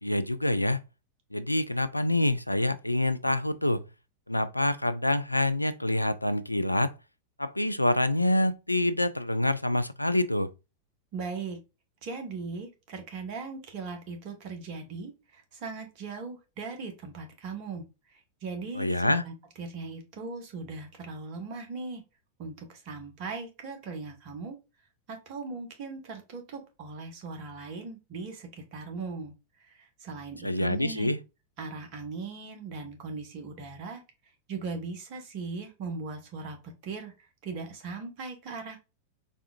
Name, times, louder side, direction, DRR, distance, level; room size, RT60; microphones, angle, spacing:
voice 1, 0.0-0.8 1.3-3.9 4.3-6.9 7.4-10.5 18.8-19.2 30.4-31.2, left 1 dB, 85° left, 0.3 m, -26 dB
voice 2, 11.1-11.6 12.0-17.8 18.1-22.0 22.4-24.6 25.1-29.3 29.6-31.1 31.6-34.0 34.5-38.8, right 4 dB, 45° right, 1.4 m, -39 dB
4.3 x 3.5 x 2.4 m
figure-of-eight pair, 90°, 0 cm